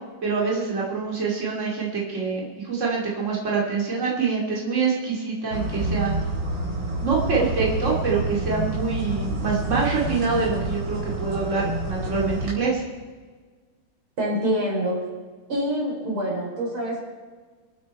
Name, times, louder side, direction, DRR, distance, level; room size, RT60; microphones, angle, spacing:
voice 1, 0.2-6.2 7.0-12.8, right 4 dB, 35° right, -3 dB, 3.3 m, -25 dB
sound 1, 5.5-12.5, right 2 dB, 65° right, 4.9 m, -28 dB
voice 2, 14.2-15.1 15.5-17.0, equal, 85° right, -2 dB, 5.0 m, -26 dB
26.0 x 9.3 x 4.5 m, 1.4 s
omnidirectional pair, 2.3 m